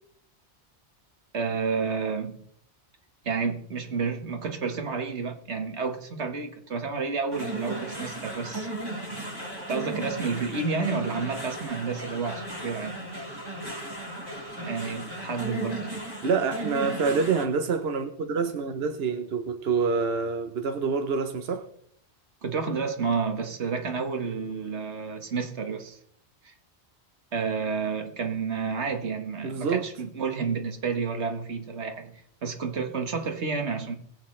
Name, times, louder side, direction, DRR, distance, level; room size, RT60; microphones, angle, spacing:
voice 1, 1.3-2.4 3.2-8.7 9.7-13.0 14.6-15.9 22.4-26.0 26.4-26.5 27.3-34.0, right 5 dB, 85° right, 6 dB, 1.7 m, -30 dB
sound 1, 7.3-17.5, right 1 dB, 20° right, 2.5 m, -36 dB
voice 2, 16.2-21.6 29.4-29.8, right 5 dB, 65° right, 6 dB, 1.1 m, -26 dB
21.0 x 8.4 x 3.2 m, 0.66 s
omnidirectional pair, 1.1 m